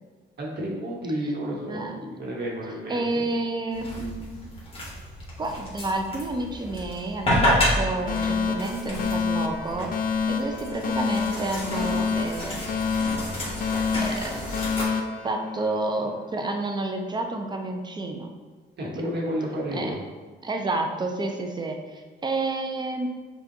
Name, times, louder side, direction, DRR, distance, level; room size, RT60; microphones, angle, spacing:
voice 1, 0.4-3.2 18.8-20.0, equal, 60° right, -3 dB, 1.3 m, -31 dB
voice 2, 1.7-2.2 2.9-4.4 5.4-9.9 10.3-12.5 14.0-14.4 15.2-18.3 19.0-19.1 19.7-19.9 20.4-23.1, right 2 dB, 20° right, 3 dB, 0.5 m, -30 dB
sound 1, 3.7-14.8, left 1 dB, 30° left, 1.3 m, -30 dB
Alarm, 8.1-16.1, left 5 dB, 45° left, 0.4 m, -28 dB
5.6 x 2.4 x 2.7 m, 1.4 s
cardioid pair, 90°, 20 cm